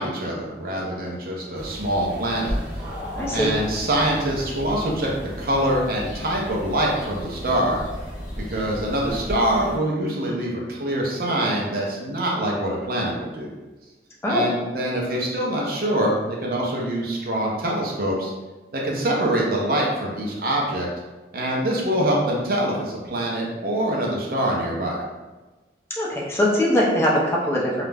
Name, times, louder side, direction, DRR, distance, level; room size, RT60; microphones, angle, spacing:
voice 1, 0.0-2.5 3.3-5.1 5.4-7.8 8.5-13.5 14.3-18.3 18.7-20.9 21.3-25.0, right 1 dB, 55° right, -2 dB, 0.6 m, -24 dB
sound 1, 1.5-9.8, equal, 20° right, 0.9 m, -34 dB
voice 2, 3.2-3.5 14.2-14.5 26.0-27.9, left 1 dB, 15° left, -4 dB, 0.5 m, -21 dB
2.4 x 2.1 x 3.2 m, 1.2 s
head